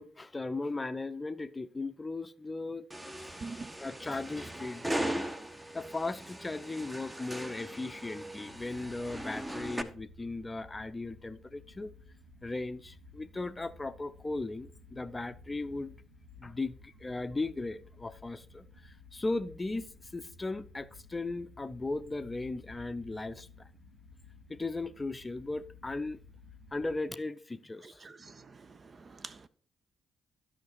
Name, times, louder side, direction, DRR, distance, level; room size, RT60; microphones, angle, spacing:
voice 1, 0.0-2.9 3.8-5.3 5.7-11.9 12.4-16.0 16.4-23.7 24.5-26.2 26.7-28.1, left 2 dB, 20° left, 0.6 m, -37 dB
sound 1, 2.9-9.8, right 1 dB, 15° right, 1.0 m, -39 dB
sound 2, 8.4-27.0, left 3 dB, 80° right, 1.8 m, -55 dB
voice 2, 27.8-29.5, right 4 dB, 35° right, 0.6 m, -46 dB
13.0 x 5.9 x 4.5 m
figure-of-eight pair, 40°, 0 cm